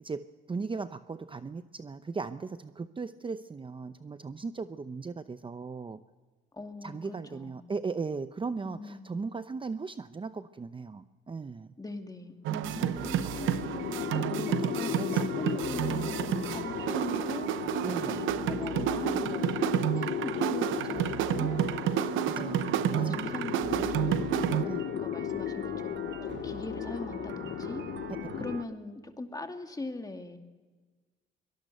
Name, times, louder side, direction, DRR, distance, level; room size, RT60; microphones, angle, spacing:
voice 1, 0.0-6.0 6.8-11.7 12.8-13.0 14.3-16.6 17.8-18.2 22.2-22.6 22.9-23.2 24.6-24.9, right 4 dB, 25° right, 11 dB, 0.7 m, -38 dB
voice 2, 6.5-7.7 8.6-9.2 11.8-13.9 14.7-21.5 22.4-24.7 25.0-26.1 26.4-27.9 28.4-30.4, left 2 dB, 20° left, 5 dB, 2.4 m, -41 dB
sound 1, 12.5-24.6, right 12 dB, 90° right, 0.8 m, -30 dB
sound 2, 12.6-28.6, left 11 dB, 65° left, 0.9 m, -36 dB
sound 3, 12.6-28.7, right 8 dB, 65° right, 1.0 m, -45 dB
23.5 x 18.5 x 6.7 m, 1.4 s
cardioid pair, 90°, 20 cm